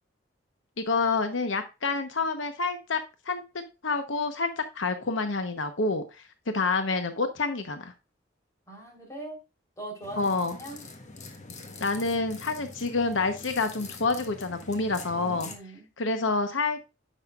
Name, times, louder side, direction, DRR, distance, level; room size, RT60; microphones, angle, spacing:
voice 1, 0.8-3.0 3.3-3.4 3.8-6.0 6.5-7.9 10.2-10.6 11.8-15.5 16.0-16.8, left 3 dB, 80° left, 8 dB, 1.0 m, -28 dB
voice 2, 8.7-9.4 9.8-10.3 10.6-10.8 15.1-15.9, right 2 dB, 15° left, 0 dB, 3.8 m, -41 dB
sound 1, 10.0-15.6, left 3 dB, 40° left, 1.3 m, -44 dB
9.9 x 6.4 x 2.4 m, 0.28 s
head